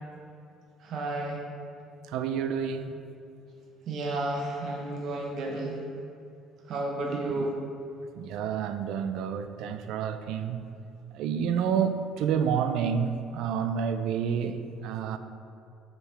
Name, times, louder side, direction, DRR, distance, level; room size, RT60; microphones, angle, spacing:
voice 1, 0.8-1.4 3.9-5.8 6.7-7.6, right 2 dB, 55° right, 0.9 m, -32 dB
voice 2, 2.1-2.9 7.3-7.5 8.2-10.6 11.1-15.2, right 7 dB, 75° right, 0.4 m, -29 dB
6.8 x 4.3 x 3.4 m
cardioid pair, 120°, 0 cm